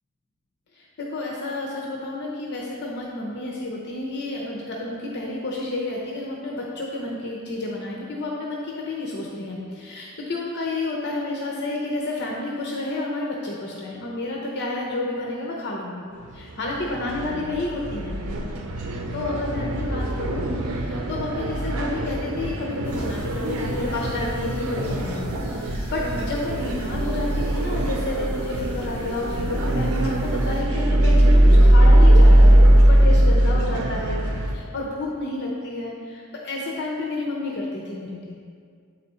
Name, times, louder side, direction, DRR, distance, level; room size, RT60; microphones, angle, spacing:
voice 1, 0.8-16.1 16.3-18.2 19.1-31.3 31.6-34.2 34.5-38.4, left 2 dB, 50° left, -2 dB, 0.7 m, -30 dB
sound 1, 16.2-34.5, right 1 dB, 85° right, 0.7 m, -20 dB
sound 2, 22.8-30.6, left 1 dB, 10° left, 1.9 m, -38 dB
8.3 x 4.2 x 4.3 m, 2.2 s
head